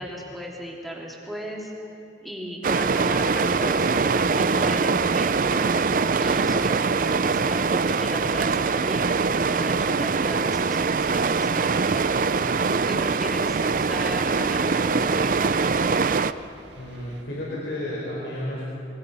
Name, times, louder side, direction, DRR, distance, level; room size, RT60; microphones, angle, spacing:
voice 1, 0.0-1.7 2.2-5.7 6.2-9.0 9.5-12.0 12.7-15.6, equal, ahead, -2 dB, 3.3 m, -36 dB
sound 1, 2.6-16.3, right 4 dB, 50° right, 0.5 m, -23 dB
sound 2, 2.6-17.2, right 2 dB, 85° right, 1.8 m, -49 dB
voice 2, 16.8-18.6, left 1 dB, 90° left, -5 dB, 4.9 m, -32 dB
27.0 x 23.5 x 5.6 m, 2.6 s
head